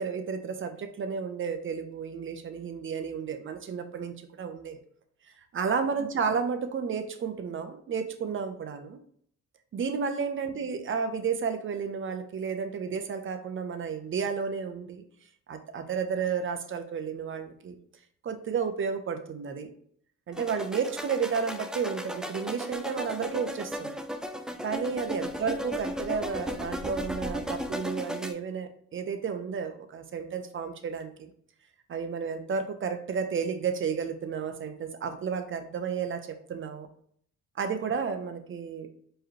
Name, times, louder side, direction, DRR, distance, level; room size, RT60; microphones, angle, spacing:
voice 1, 0.0-4.8 5.5-9.0 9.7-15.0 15.5-17.8 18.2-19.7 20.3-24.0 24.6-31.3 31.9-36.9 37.6-38.9, right 6 dB, 40° right, 7 dB, 0.7 m, -32 dB
sound 1, 20.3-28.3, equal, ahead, 0.4 m, -35 dB
4.6 x 3.2 x 2.9 m, 0.64 s
cardioid pair, 90°, 30 cm